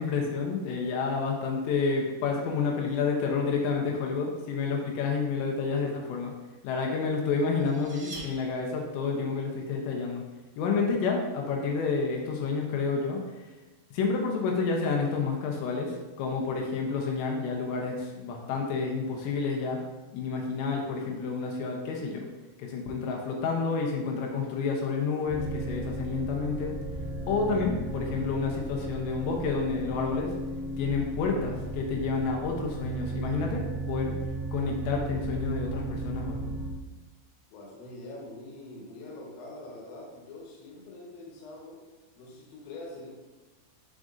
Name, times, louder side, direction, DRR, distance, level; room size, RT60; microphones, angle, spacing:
voice 1, 0.0-6.3 6.6-10.2 10.6-13.5 13.9-19.8 20.1-22.3 22.6-26.8 27.3-30.3 30.8-33.6 33.9-34.1 34.5-36.5, left 4 dB, 85° left, 0 dB, 2.9 m, -29 dB
sound 1, 7.4-9.1, right 2 dB, 55° right, 1.1 m, -45 dB
sound 2, 25.3-36.7, right 2 dB, 75° right, 2.3 m, -35 dB
voice 2, 37.5-41.8 42.2-43.1, left 2 dB, 70° left, -2 dB, 2.6 m, -44 dB
9.8 x 3.7 x 2.5 m, 1.2 s
omnidirectional pair, 5.0 m